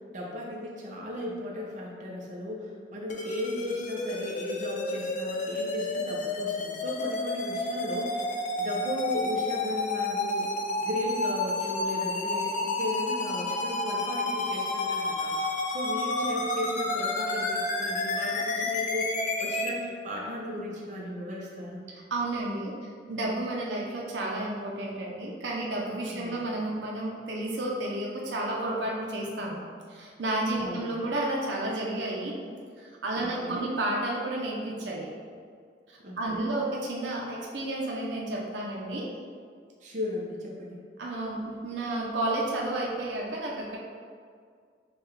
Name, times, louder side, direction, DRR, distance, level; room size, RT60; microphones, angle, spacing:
voice 1, 0.1-15.3 15.7-21.8 26.1-26.5 30.6-31.0 33.2-33.7 36.0-36.5 39.8-40.8, left 1 dB, 45° right, -3 dB, 0.7 m, -36 dB
sound 1, 3.1-19.7, left 2 dB, 45° left, 0.4 m, -30 dB
voice 2, 22.1-22.7 23.1-29.6 29.9-32.4 32.8-35.1 36.2-39.1 41.0-43.8, right 1 dB, 80° right, -3 dB, 0.7 m, -31 dB
6.7 x 2.4 x 3.1 m, 2.1 s
head